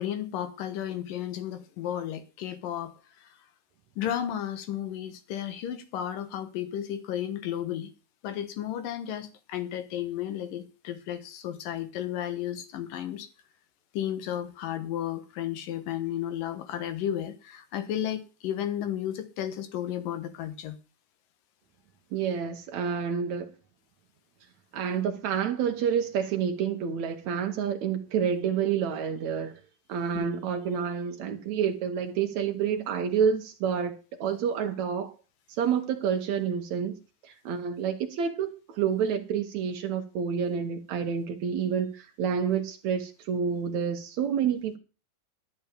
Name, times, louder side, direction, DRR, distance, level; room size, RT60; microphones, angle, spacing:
voice 1, 0.0-2.9 3.2-3.4 4.0-7.9 8.2-13.3 13.9-20.8 30.1-30.3, left 11 dB, 65° left, 2.7 m, -33 dB
voice 2, 22.1-23.5 24.7-29.6 29.9-35.1 35.5-44.8, right 7 dB, 70° right, 1.8 m, -29 dB
12.0 x 7.3 x 7.0 m
omnidirectional pair, 4.6 m